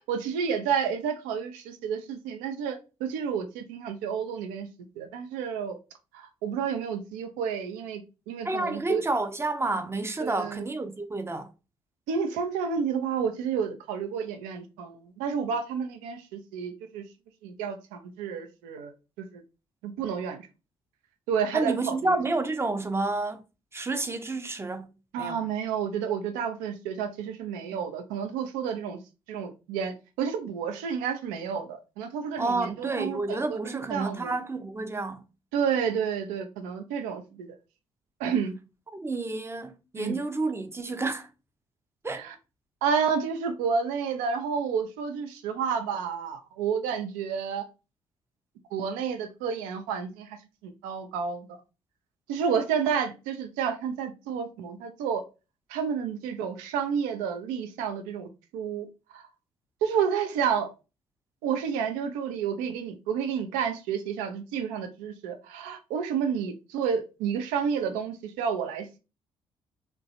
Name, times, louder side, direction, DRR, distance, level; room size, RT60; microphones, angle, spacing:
voice 1, 0.0-4.7 5.0-5.8 6.1-9.0 10.2-10.6 12.1-17.0 17.4-18.9 19.3-19.4 19.8-20.5 21.3-22.2 25.1-29.0 29.3-33.2 33.5-34.3 35.5-37.5 38.2-38.5 40.0-40.2 42.1-42.3 42.8-47.7 48.7-50.4 50.6-51.6 52.3-55.2 55.7-58.9 59.1-59.2 59.8-60.7 61.4-69.0, right 7 dB, 70° right, 0.5 m, -30 dB
voice 2, 8.4-11.5 21.5-23.4 23.7-24.9 25.2-25.4 32.4-35.2 38.9-41.3 42.0-42.2, right 2 dB, 15° right, 0.6 m, -30 dB
3.1 x 2.2 x 2.7 m
figure-of-eight pair, 40°, 14 cm